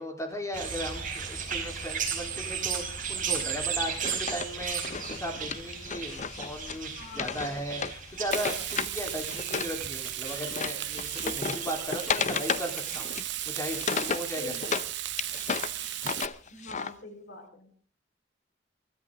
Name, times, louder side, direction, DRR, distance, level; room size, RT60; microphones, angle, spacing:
voice 1, 0.0-13.1 13.5-14.9, equal, 15° left, 3 dB, 4.1 m, -37 dB
sound 1, 0.5-15.0 15.7-15.8, right 6 dB, 45° right, 4.9 m, -36 dB
Wood, 3.7-9.8 10.0-14.9 15.2-16.9, left 6 dB, 40° left, 0.7 m, -34 dB
voice 2, 7.0-7.5 14.4-14.7 16.5-17.7, left 2 dB, 55° left, 4 dB, 5.0 m, -43 dB
Frying (food), 8.3-16.3, right 14 dB, 65° right, 0.9 m, -36 dB
24.0 x 13.5 x 3.9 m, 0.41 s
head